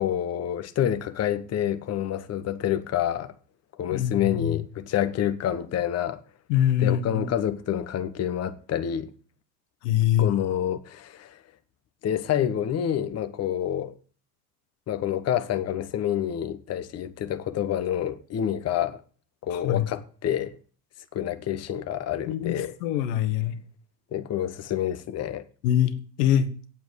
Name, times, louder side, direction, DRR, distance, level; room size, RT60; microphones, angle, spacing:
voice 1, 0.0-3.3 3.8-6.2 6.8-9.1 10.2-11.4 12.0-13.9 14.9-19.0 19.4-20.6 21.1-22.8 24.1-25.4, left 10 dB, 30° left, 1.0 m, -28 dB
voice 2, 3.9-4.5 6.5-7.3 9.8-10.3 19.5-19.9 22.3-22.5 22.8-23.5 25.6-25.9 26.2-26.5, left 10 dB, 70° left, 1.5 m, -23 dB
8.6 x 7.5 x 8.0 m
hypercardioid pair, 100°, 50 cm